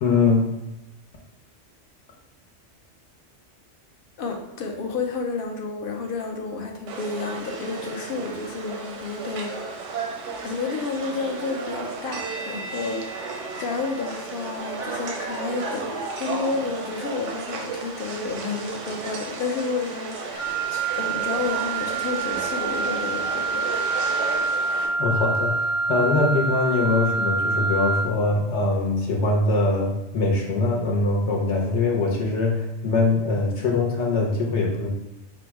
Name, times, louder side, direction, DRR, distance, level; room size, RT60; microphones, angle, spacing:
voice 1, 0.0-0.5 25.0-34.9, left 3 dB, 75° left, -1 dB, 1.0 m, -22 dB
voice 2, 4.2-23.8, left 4 dB, 60° left, 2 dB, 0.7 m, -31 dB
sound 1, 6.9-24.9, right 4 dB, 85° right, 1.0 m, -34 dB
Wind instrument woodwind instrument, 20.4-28.1, right 4 dB, 15° left, 0.4 m, -26 dB
4.2 x 2.0 x 4.5 m, 0.94 s
omnidirectional pair, 1.2 m